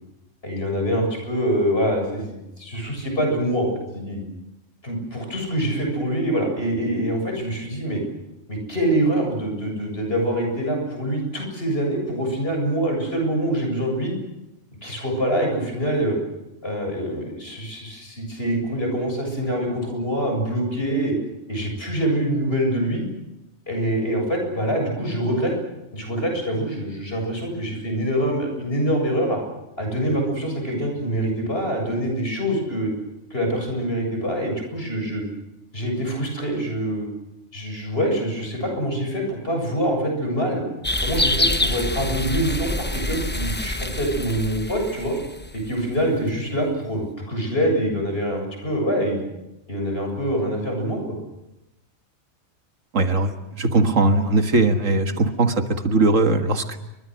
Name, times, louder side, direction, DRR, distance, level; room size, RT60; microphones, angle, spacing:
voice 1, 0.4-4.2 4.8-8.0 8.5-14.1 14.8-16.2 16.6-21.1 21.5-23.0 23.7-25.5 25.9-29.4 29.8-32.9 33.3-35.2 35.7-37.1 37.5-40.6 41.0-45.2 45.5-49.3 49.7-51.2, right 1 dB, 45° left, 3 dB, 8.0 m, -25 dB
sound 1, 40.8-45.8, left 1 dB, 10° left, 0.8 m, -26 dB
voice 2, 52.9-56.8, right 3 dB, 70° right, 6 dB, 2.1 m, -20 dB
29.0 x 24.0 x 6.5 m, 0.94 s
omnidirectional pair, 1.4 m